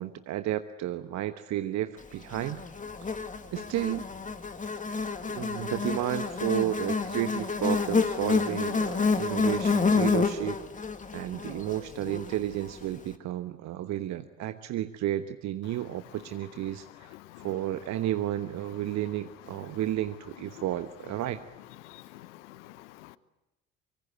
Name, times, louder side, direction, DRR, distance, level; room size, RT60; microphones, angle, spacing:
voice 1, 0.0-2.6 3.1-3.2 3.5-4.1 5.3-10.6 11.1-21.4, right 13 dB, 45° right, 10 dB, 1.1 m, -32 dB
Buzz, 2.3-12.7, left 4 dB, 20° left, 2.0 m, -29 dB
voice 2, 21.8-23.2, left 16 dB, 65° left, 17 dB, 1.0 m, -49 dB
25.5 x 24.5 x 8.4 m, 1.0 s
figure-of-eight pair, 60°, 38 cm